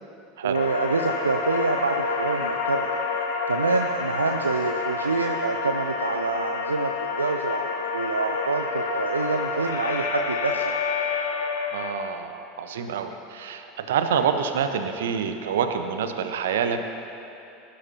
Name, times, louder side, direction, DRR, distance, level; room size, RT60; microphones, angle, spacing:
voice 1, 0.4-2.9 3.5-7.7 7.9-10.7, right 4 dB, 85° right, 5 dB, 0.4 m, -27 dB
sound 1, 0.5-11.9, left 4 dB, 70° left, 1.3 m, -28 dB
voice 2, 11.7-16.8, right 7 dB, 65° right, 7 dB, 0.9 m, -27 dB
21.0 x 12.0 x 2.8 m, 2.8 s
figure-of-eight pair, 80°, 0 cm